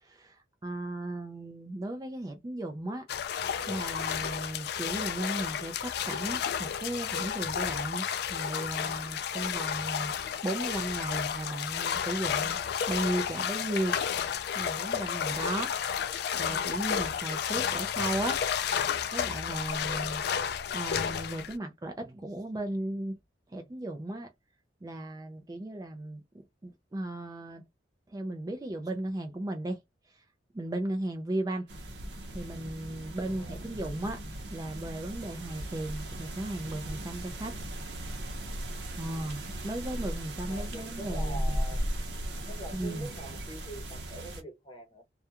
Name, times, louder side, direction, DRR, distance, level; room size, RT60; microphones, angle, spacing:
voice 1, 0.0-3.0 3.7-10.1 10.4-12.6 12.9-13.9 14.5-16.1 16.4-18.4 19.1-20.2 20.7-23.2 23.5-24.3 24.8-26.2 26.6-27.6 28.1-29.8 30.5-31.7 32.3-34.2 34.5-37.6 39.0-41.6 42.7-43.1, right 1 dB, 20° right, 0.4 m, -35 dB
sound 1, 3.1-21.5, left 8 dB, 60° left, 0.3 m, -32 dB
sound 2, 31.7-44.4, right 1 dB, 65° right, 0.7 m, -37 dB
voice 2, 33.2-33.6 40.5-41.9 42.5-45.0, equal, 25° left, 0.8 m, -45 dB
2.3 x 2.2 x 2.8 m
head